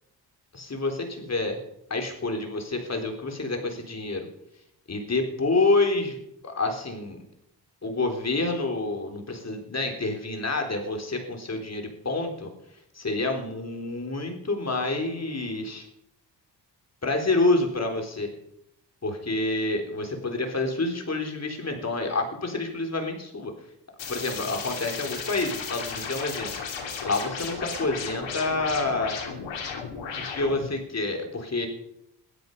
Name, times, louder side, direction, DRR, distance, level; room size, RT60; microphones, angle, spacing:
voice 1, 0.5-1.6 1.9-4.3 4.9-6.2 6.4-7.2 7.8-12.5 12.9-15.9 17.0-18.3 19.0-23.5 24.1-26.5 27.0-29.2 30.2-31.7, left 2 dB, 35° left, 4 dB, 3.8 m, -28 dB
sound 1, 24.0-30.7, left 5 dB, 75° left, 3.3 m, -35 dB
16.0 x 13.0 x 5.4 m, 0.80 s
cardioid pair, 70°, 45 cm